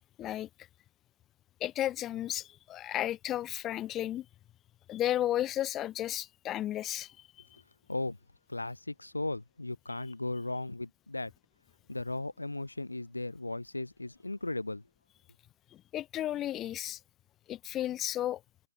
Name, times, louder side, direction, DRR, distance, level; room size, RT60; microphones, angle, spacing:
voice 1, 0.2-0.5 1.6-4.2 4.9-7.2 15.9-17.0 17.5-18.4, left 13 dB, 20° left, 0.9 m, -33 dB
voice 2, 8.5-11.3 11.9-14.8, left 2 dB, 90° left, 1.1 m, -36 dB
open air
figure-of-eight pair, 135°, 0 cm